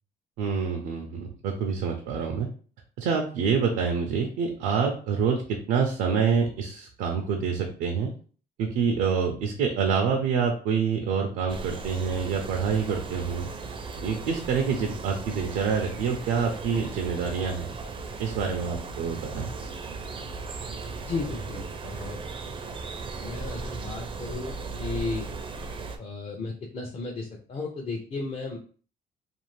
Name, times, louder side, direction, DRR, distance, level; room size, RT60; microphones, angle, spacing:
voice 1, 0.4-2.5 3.0-8.1 8.6-13.5 14.0-17.7 18.2-19.5, right 6 dB, 90° right, 2 dB, 0.5 m, -27 dB
sound 1, 11.5-26.0, right 4 dB, 30° right, 0.4 m, -37 dB
voice 2, 21.0-22.2 23.2-25.3 26.0-28.6, left 3 dB, 35° left, -1 dB, 0.5 m, -34 dB
2.5 x 2.4 x 3.1 m, 0.42 s
cardioid pair, 110°, 17 cm